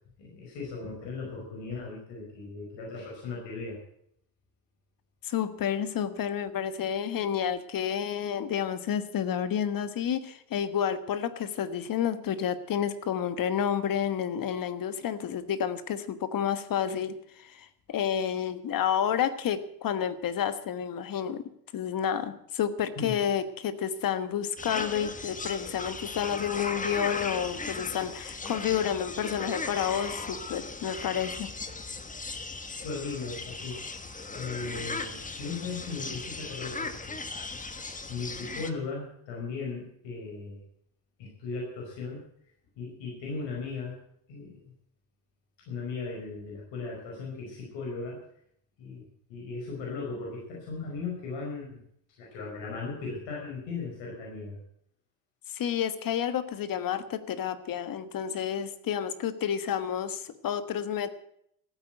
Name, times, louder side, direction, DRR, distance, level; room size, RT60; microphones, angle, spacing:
voice 1, 0.2-3.8 23.0-23.1 32.8-33.8 34.1-37.2 37.6-37.7 38.1-40.6 41.2-42.2 42.8-44.0 44.3-44.7 45.7-48.2 48.8-51.8 52.1-54.6, left 4 dB, 65° left, -2 dB, 5.3 m, -37 dB
voice 2, 5.2-21.4 21.7-31.5 55.5-61.1, left 9 dB, 45° left, 12 dB, 1.5 m, -30 dB
sound 1, 24.6-38.7, left 3 dB, 15° left, 1.4 m, -37 dB
14.5 x 8.6 x 9.1 m, 0.72 s
supercardioid pair, 90°, 48 cm